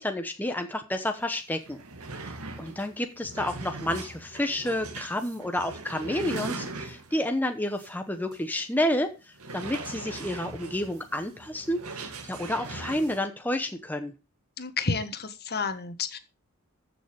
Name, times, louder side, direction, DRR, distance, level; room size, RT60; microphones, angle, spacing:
voice 1, 0.0-1.8 2.2-2.3 2.6-14.1, left 1 dB, 10° left, 5 dB, 1.0 m, -30 dB
sound 1, 1.2-1.3 1.6-7.3 7.8-7.9 8.3-8.4 9.3-13.2, right 3 dB, 90° right, 1.9 m, -40 dB
voice 2, 14.6-16.2, left 4 dB, 45° left, 10 dB, 1.6 m, -30 dB
14.5 x 6.6 x 5.3 m, 0.29 s
head